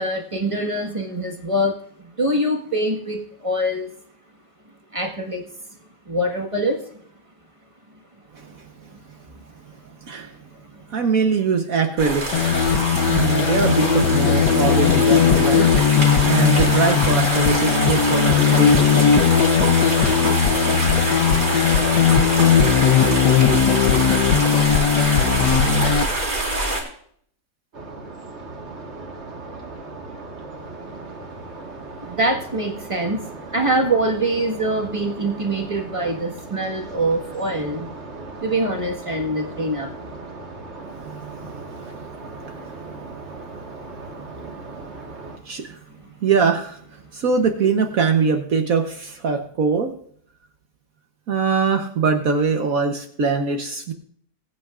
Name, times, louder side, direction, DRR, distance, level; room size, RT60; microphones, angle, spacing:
voice 1, 0.0-1.8 2.2-3.9 4.9-5.4 6.1-6.8 8.9-9.0 10.7-11.1 32.0-33.2 33.5-37.9 38.4-39.9, right 1 dB, 20° right, 1 dB, 1.5 m, -24 dB
voice 2, 10.9-12.5 13.1-19.1 41.0-41.9 45.5-45.8 46.2-46.8 47.1-49.9 51.3-53.9, right 5 dB, 60° right, 5 dB, 1.3 m, -22 dB
sound 1, 12.0-26.8, right 2 dB, 85° right, 4.5 m, -25 dB
sound 2, 12.3-26.0, left 7 dB, 85° left, 1.5 m, -18 dB
sound 3, 27.7-45.4, right 3 dB, 45° right, 1.8 m, -38 dB
21.0 x 9.0 x 2.5 m, 0.62 s
omnidirectional pair, 1.8 m